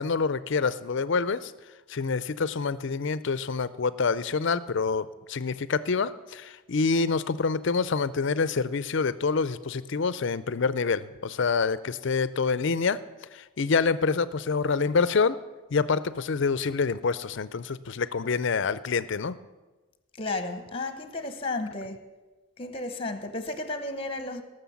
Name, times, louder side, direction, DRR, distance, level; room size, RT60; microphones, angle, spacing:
voice 1, 0.0-1.5 1.9-13.0 13.3-15.4 15.7-19.3, left 4 dB, 55° left, 0.5 m, -27 dB
voice 2, 20.2-22.0 22.6-24.4, left 2 dB, 25° left, 1.1 m, -33 dB
17.0 x 6.7 x 7.1 m
head